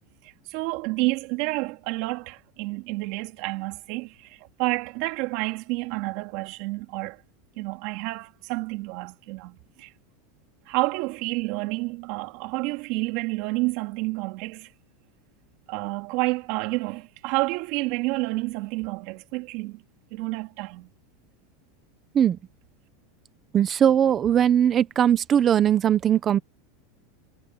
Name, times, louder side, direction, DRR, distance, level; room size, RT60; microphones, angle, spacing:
voice 1, 0.2-7.2 7.6-9.9 10.7-14.7 15.7-19.8 20.1-20.9, right 24 dB, 50° right, 3.2 m, -29 dB
voice 2, 23.5-26.4, right 9 dB, 20° right, 1.0 m, -20 dB
supercardioid pair, 165°, 0 cm